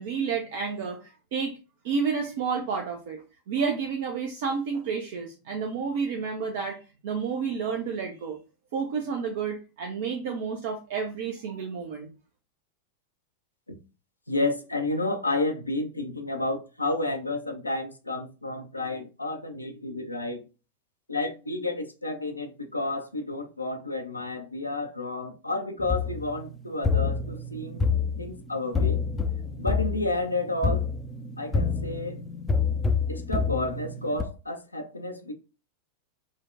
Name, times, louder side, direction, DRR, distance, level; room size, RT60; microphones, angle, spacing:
voice 1, 0.0-1.6 1.8-8.4 8.7-12.1, right 5 dB, 50° right, 0.5 m, -30 dB
voice 2, 14.3-20.4 21.1-27.8 28.2-29.0 29.6-30.9 31.4-32.2 33.1-35.3, left 2 dB, 85° left, 0.5 m, -31 dB
sound 1, 25.8-34.2, left 5 dB, 15° left, 0.4 m, -28 dB
3.8 x 2.1 x 2.4 m
figure-of-eight pair, 90°, 0 cm